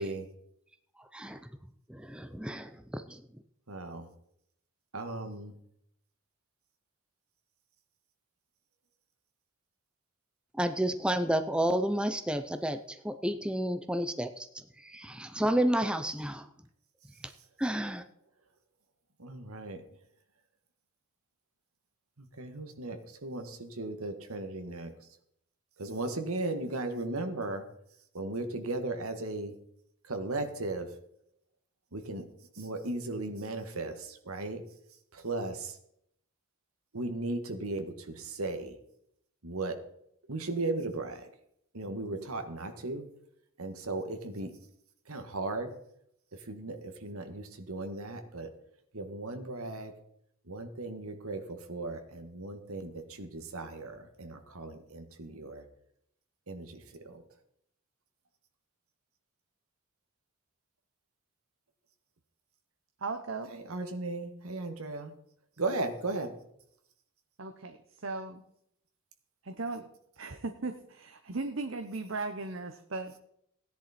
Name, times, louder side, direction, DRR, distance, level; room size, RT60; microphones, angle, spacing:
voice 1, 1.0-1.5 1.9-3.4 10.5-16.5 17.2-17.3 17.6-18.0, right 1 dB, 5° right, 9 dB, 0.5 m, -31 dB
voice 2, 3.7-4.1 4.9-5.5 19.2-19.8 22.2-24.9 25.8-27.6 28.1-29.5 30.1-30.9 31.9-32.3 32.6-34.6 35.1-35.8 36.9-38.8 39.4-39.8 40.3-41.3 41.7-43.1 43.6-44.5 45.1-45.7 46.5-48.5 48.9-49.9 50.5-55.6 56.5-57.2 63.5-65.1 65.6-66.3, right 2 dB, 80° right, 7 dB, 1.7 m, -36 dB
voice 3, 63.0-63.5 67.4-68.4 69.4-69.9 70.2-73.2, right 3 dB, 60° right, 7 dB, 0.9 m, -37 dB
16.5 x 10.5 x 4.3 m, 0.73 s
head